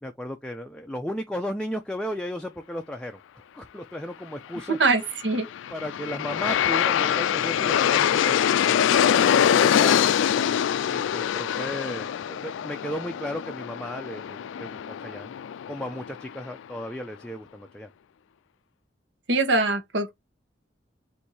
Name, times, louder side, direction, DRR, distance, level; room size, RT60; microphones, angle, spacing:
voice 1, 0.0-3.2 3.5-4.8 5.7-8.4 9.3-10.0 10.9-15.3 15.7-17.9, equal, 5° left, 0.4 m, -35 dB
voice 2, 4.7-5.5 19.3-20.1, right 3 dB, 75° right, 1.0 m, -23 dB
Aircraft, 5.3-16.4, left 9 dB, 90° left, 0.3 m, -24 dB
4.2 x 2.7 x 4.6 m
head